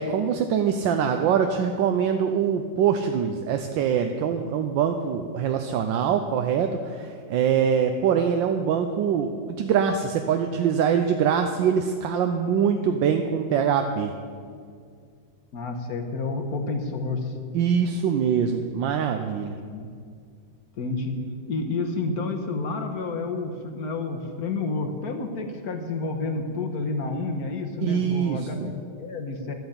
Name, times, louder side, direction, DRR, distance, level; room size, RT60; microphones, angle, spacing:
voice 1, 0.0-9.3 9.6-14.1 17.5-19.6 27.8-28.7, right 7 dB, 80° right, 6 dB, 1.4 m, -23 dB
voice 2, 15.5-17.3 19.7-19.9 20.8-21.2 21.5-29.5, left 3 dB, 55° left, 5 dB, 1.5 m, -30 dB
12.0 x 8.0 x 8.7 m, 2.1 s
omnidirectional pair, 2.1 m